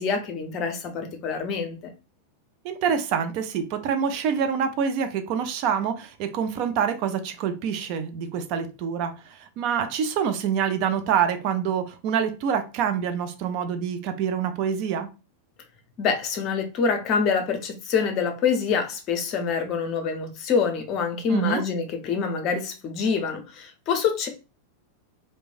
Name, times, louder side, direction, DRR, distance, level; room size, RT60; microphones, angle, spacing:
voice 1, 0.0-1.9 16.0-24.3, left 5 dB, 35° left, 0.6 m, -26 dB
voice 2, 2.6-15.1 21.3-21.6, right 7 dB, 45° right, 0.4 m, -26 dB
3.0 x 2.1 x 2.4 m
figure-of-eight pair, 90°, 0 cm